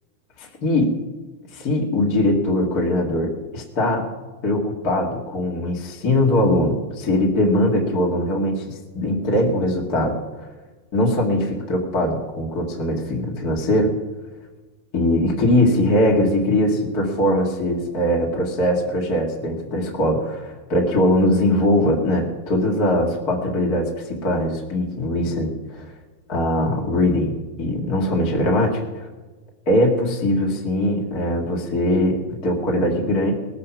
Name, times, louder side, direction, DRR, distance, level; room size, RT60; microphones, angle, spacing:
voice 1, 0.4-0.9 1.5-4.1 4.4-10.2 10.9-13.9 14.9-25.9 26.3-29.1 29.7-33.3, left 1 dB, 30° left, -2 dB, 1.9 m, -21 dB
20.0 x 8.7 x 6.0 m, 1.2 s
omnidirectional pair, 4.1 m